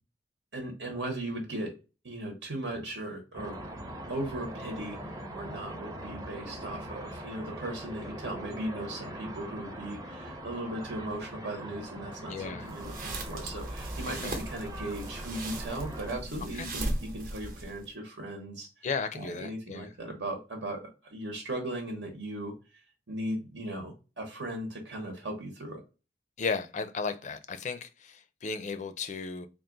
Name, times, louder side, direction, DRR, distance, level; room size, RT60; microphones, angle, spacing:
voice 1, 0.5-1.7 2.0-3.6 4.1-18.7 19.1-22.5 23.1-25.8, right 1 dB, 85° right, 1.2 m, -37 dB
sound 1, 3.3-16.2, right 1 dB, 20° right, 0.6 m, -42 dB
voice 2, 12.3-12.7 14.1-14.4 16.6-16.7 18.8-19.9 26.4-29.5, left 5 dB, 45° left, 0.4 m, -35 dB
sound 2, 12.7-17.9, right 1 dB, 50° right, 0.9 m, -37 dB
3.8 x 2.5 x 3.8 m
head